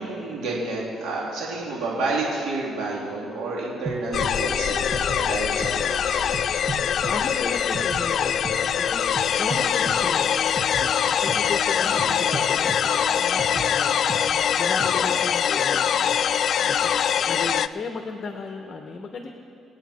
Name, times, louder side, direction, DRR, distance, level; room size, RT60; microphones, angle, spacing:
voice 1, 0.0-6.3 11.8-12.2 14.9-15.0, right 3 dB, 80° right, -5 dB, 3.1 m, -30 dB
sound 1, 3.9-15.1, right 3 dB, 35° right, 1.5 m, -38 dB
sound 2, 4.1-17.7, left 8 dB, 60° left, 0.3 m, -23 dB
voice 2, 6.8-10.4 10.7-14.0 14.2-19.3, left 4 dB, 40° left, 4 dB, 1.1 m, -35 dB
25.5 x 8.8 x 4.4 m, 2.6 s
cardioid pair, 90°, 0 cm